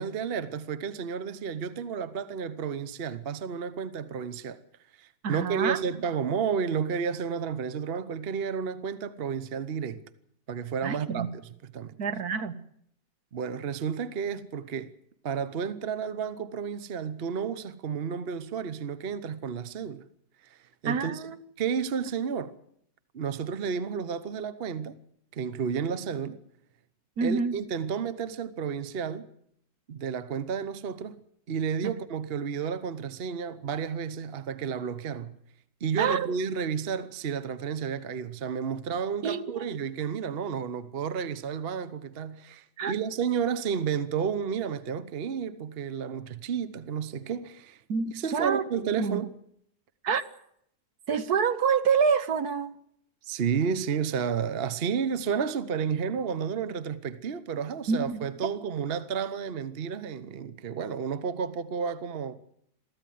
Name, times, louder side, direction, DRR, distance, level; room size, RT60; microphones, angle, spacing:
voice 1, 0.0-4.6 5.0-10.0 10.5-12.0 13.3-14.9 15.2-20.1 20.4-21.2 21.6-22.6 23.1-25.0 25.3-26.4 27.2-29.3 29.9-31.2 31.5-35.4 35.8-47.8 48.1-49.3 53.2-62.4, right 6 dB, 40° right, 1.0 m, -31 dB
voice 2, 5.2-5.8 10.8-11.3 12.0-12.6 20.8-21.4 27.2-27.6 31.8-31.9 36.0-36.3 39.2-39.6 42.8-42.9 47.9-48.6 49.0-49.2 50.0-50.2 51.1-52.8 57.9-58.2, right 6 dB, 65° right, 1.6 m, -27 dB
23.0 x 14.5 x 9.3 m
omnidirectional pair, 1.8 m